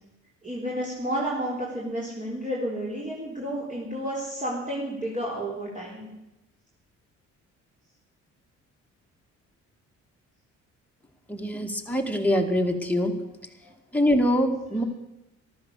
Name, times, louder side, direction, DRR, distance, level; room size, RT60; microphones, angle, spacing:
voice 1, 0.4-6.1 13.6-13.7, equal, 25° right, -5 dB, 4.1 m, -31 dB
voice 2, 11.3-13.1 13.9-14.8, equal, 5° left, 2 dB, 2.2 m, -24 dB
14.0 x 12.5 x 6.5 m, 0.94 s
cardioid pair, 90°, 30 cm